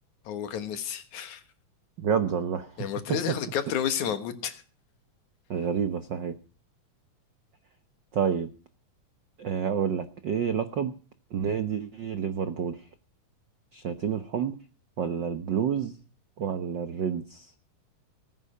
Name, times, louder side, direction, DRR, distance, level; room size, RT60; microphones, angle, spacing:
voice 1, 0.3-1.4 2.8-4.6, left 9 dB, 75° left, 10 dB, 2.8 m, -31 dB
voice 2, 2.0-3.4 5.5-6.4 8.1-8.5 9.4-10.9 11.3-12.9 13.7-14.6 15.0-16.0 16.4-17.5, right 7 dB, 80° right, 9 dB, 1.0 m, -29 dB
20.0 x 9.9 x 5.5 m, 0.37 s
omnidirectional pair, 3.5 m